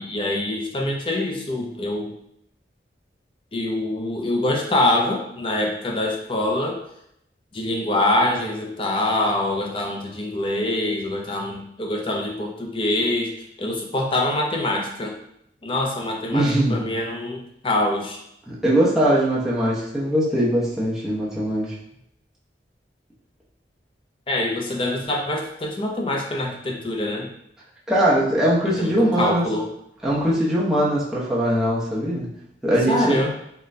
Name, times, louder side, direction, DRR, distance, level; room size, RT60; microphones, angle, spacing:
voice 1, 0.0-2.2 3.5-6.8 7.5-13.3 13.6-15.2 15.6-18.2 24.3-27.3 28.7-29.7 32.9-33.3, left 1 dB, 30° left, 1 dB, 0.4 m, -24 dB
voice 2, 16.3-16.8 18.5-21.8 27.9-29.5 30.0-32.3 32.6-33.3, equal, 5° right, -7 dB, 0.8 m, -21 dB
3.9 x 2.2 x 3.2 m, 0.76 s
head